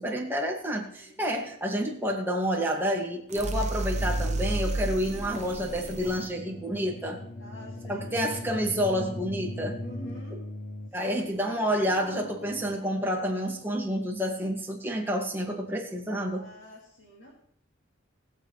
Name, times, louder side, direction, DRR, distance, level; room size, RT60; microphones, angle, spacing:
voice 1, 0.0-7.2 7.9-9.8 10.9-16.4, equal, 10° right, -1 dB, 2.0 m, -29 dB
sound 1, 3.3-6.3, right 2 dB, 35° right, 0.8 m, -31 dB
sound 2, 3.9-12.8, left 1 dB, 40° left, 0.8 m, -40 dB
voice 2, 7.4-8.2 9.8-10.4 11.0-11.4 16.3-17.3, equal, 65° left, -3 dB, 2.5 m, -47 dB
20.0 x 7.8 x 3.3 m, 0.65 s
head